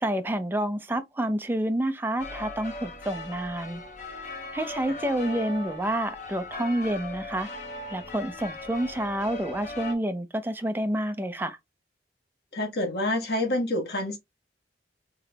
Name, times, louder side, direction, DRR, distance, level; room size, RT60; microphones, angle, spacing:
voice 1, 0.0-3.8 4.5-7.5 7.9-11.6, right 1 dB, 10° right, 0.4 m, -29 dB
sound 1, 2.2-10.0, left 2 dB, 45° left, 0.8 m, -39 dB
voice 2, 12.5-14.2, left 1 dB, 60° left, 1.4 m, -27 dB
3.7 x 3.4 x 2.2 m
head